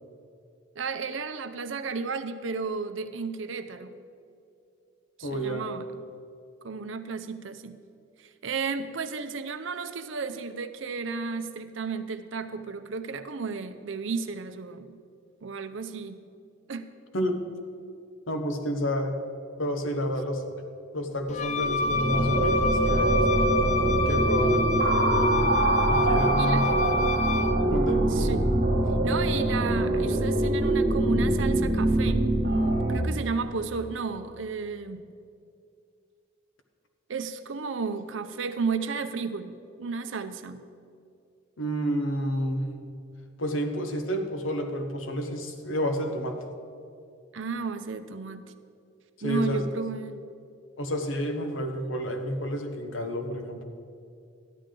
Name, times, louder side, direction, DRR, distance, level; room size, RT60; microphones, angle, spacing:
voice 1, 0.8-4.0 5.2-5.9 6.6-7.8 8.2-15.0 15.4-16.2 16.7-16.9 26.4-26.6 28.1-28.5 29.0-35.1 37.1-40.7 47.3-48.5 49.2-50.3, right 4 dB, 75° right, 10 dB, 0.6 m, -33 dB
voice 2, 5.2-5.7 17.1-17.3 18.3-19.2 19.6-20.4 20.9-23.6 24.1-25.5 25.9-26.8 27.7-28.1 41.6-42.7 43.4-46.4 49.2-49.6 50.8-53.7, equal, 80° left, 5 dB, 1.1 m, -30 dB
Wind instrument woodwind instrument, 21.3-27.6, left 4 dB, 35° left, 0.4 m, -28 dB
sound 1, 21.4-33.0, right 2 dB, 55° right, 1.5 m, -24 dB
13.5 x 10.5 x 3.8 m, 2.5 s
head